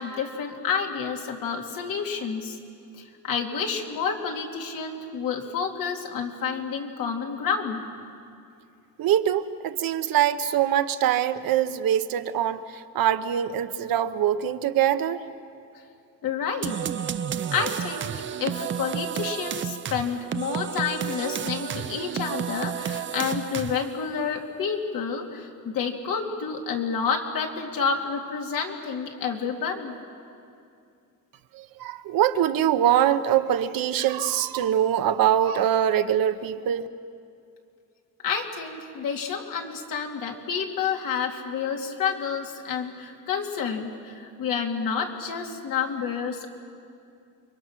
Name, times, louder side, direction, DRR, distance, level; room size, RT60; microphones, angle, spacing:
voice 1, 0.0-2.6 2.9-7.8 16.2-16.8 17.5-18.1 18.4-29.9 38.2-46.5, left 6 dB, 75° left, 2 dB, 2.6 m, -29 dB
voice 2, 9.0-15.2 31.5-36.9, right 10 dB, 85° right, 10 dB, 1.0 m, -23 dB
sound 1, 16.6-24.0, right 8 dB, 35° right, 0.5 m, -31 dB
29.5 x 23.0 x 6.3 m, 2.5 s
cardioid pair, 160°, 34 cm